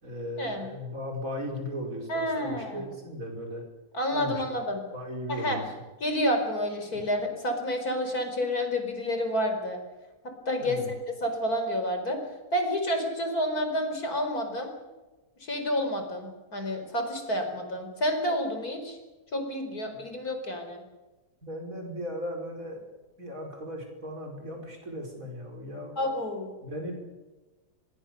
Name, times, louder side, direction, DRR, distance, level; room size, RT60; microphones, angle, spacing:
voice 1, 0.0-3.6 4.1-4.4 4.9-5.7 6.9-7.0 10.6-10.9 19.9-20.0 21.4-22.8 23.2-25.9 26.6-26.9, equal, 60° right, 1 dB, 5.9 m, -37 dB
voice 2, 2.1-2.8 3.9-4.8 5.3-5.6 6.0-9.8 10.5-10.8 11.2-12.2 12.5-14.7 15.5-19.0 19.3-20.8 26.0-26.5, equal, 80° left, 5 dB, 5.1 m, -29 dB
24.0 x 22.5 x 6.9 m, 1.1 s
omnidirectional pair, 1.6 m